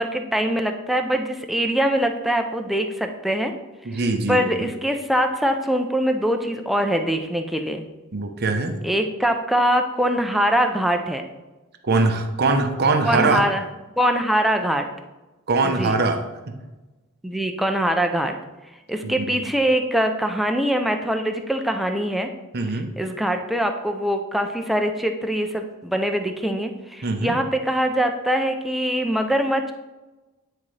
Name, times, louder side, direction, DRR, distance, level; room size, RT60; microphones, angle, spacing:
voice 1, 0.0-3.5 4.3-7.8 8.8-11.2 13.0-13.6 14.0-14.9 15.6-16.0 17.2-18.3 18.9-22.3 23.0-29.7, equal, ahead, 4 dB, 0.5 m, -23 dB
voice 2, 3.8-4.7 8.1-8.8 11.8-13.5 15.5-16.5 19.0-19.4 22.5-22.9 27.0-27.3, right 3 dB, 50° right, 5 dB, 0.8 m, -22 dB
9.7 x 4.1 x 3.2 m, 1.1 s
head